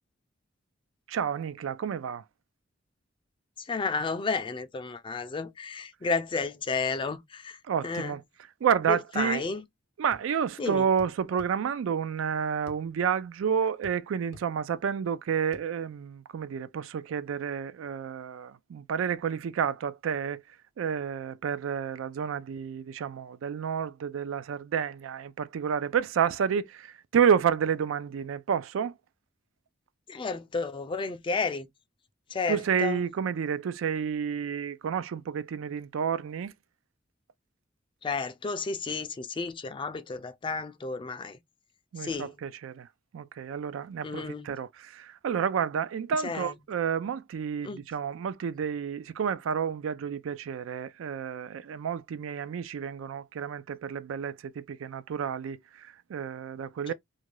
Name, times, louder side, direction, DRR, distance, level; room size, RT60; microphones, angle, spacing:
voice 1, 1.1-2.2 7.7-8.2 8.6-9.4 10.0-20.4 20.8-29.0 32.5-36.5 41.9-42.9 43.1-56.9, right 7 dB, 80° right, 0.3 m, -30 dB
voice 2, 3.6-7.6 7.8-8.1 8.9-9.6 10.6-10.8 30.1-31.7 32.3-33.0 38.0-41.4 42.0-42.3 44.0-44.5 46.2-46.5 47.6-47.8 56.9-57.0, left 4 dB, 25° left, 0.4 m, -32 dB
sound 1, 10.1-10.3 11.0-11.5 12.7-12.8 13.8-14.0 14.3-14.5 15.5-15.7, left 3 dB, 80° left, 0.6 m, -48 dB
2.5 x 2.2 x 3.0 m
head